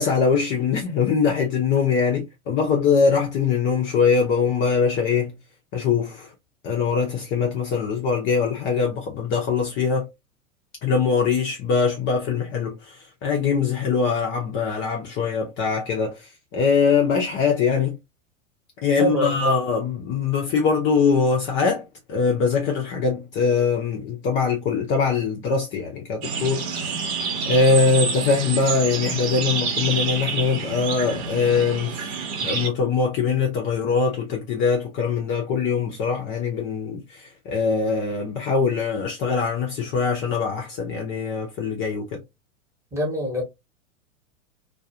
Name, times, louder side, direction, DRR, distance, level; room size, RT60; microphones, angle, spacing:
voice 1, 0.0-5.4 5.7-6.3 6.6-10.1 10.8-18.0 18.8-32.0 32.4-42.2, left 5 dB, 30° left, 0.6 m, -22 dB
voice 2, 19.0-19.5 42.9-43.4, equal, 5° right, 1.0 m, -25 dB
sound 1, 26.2-32.7, right 5 dB, 55° right, 1.0 m, -28 dB
2.3 x 2.3 x 2.6 m
figure-of-eight pair, 95°, 40 cm